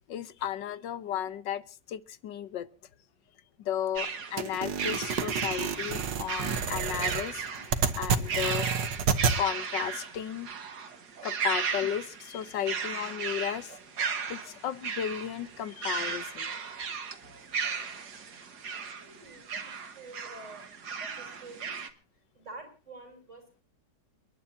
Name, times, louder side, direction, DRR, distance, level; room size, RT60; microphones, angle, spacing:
voice 1, 0.1-1.6 1.9-2.7 3.6-7.7 8.0-8.7 9.3-10.5 11.2-13.8 14.0-16.5, left 10 dB, 90° left, 1.7 m, -34 dB
sound 1, 4.0-21.9, right 6 dB, 65° right, 2.3 m, -36 dB
sound 2, 4.4-9.4, right 5 dB, 90° right, 2.0 m, -29 dB
voice 2, 18.9-21.8 22.3-23.6, right 2 dB, 40° right, 7.2 m, -48 dB
29.5 x 12.0 x 2.8 m
omnidirectional pair, 1.9 m